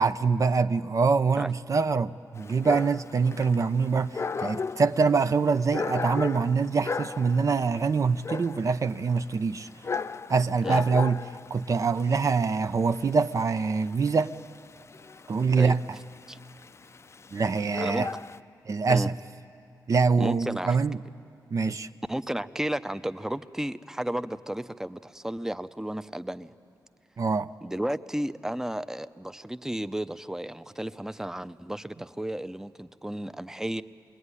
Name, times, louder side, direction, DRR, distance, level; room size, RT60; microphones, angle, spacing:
voice 1, 0.0-9.7 10.3-11.2 11.5-14.3 15.3-15.8 17.3-18.1 18.7-19.1 19.9-21.0 21.5-21.9 27.2-27.5, right 4 dB, 45° right, 11 dB, 0.6 m, -24 dB
Dog, 2.4-18.4, left 5 dB, 40° left, 0.5 m, -36 dB
voice 2, 20.2-20.8 22.1-26.5 27.6-33.8, right 1 dB, 5° right, 12 dB, 0.7 m, -33 dB
26.0 x 21.5 x 9.8 m, 2.7 s
cardioid pair, 80°, 7 cm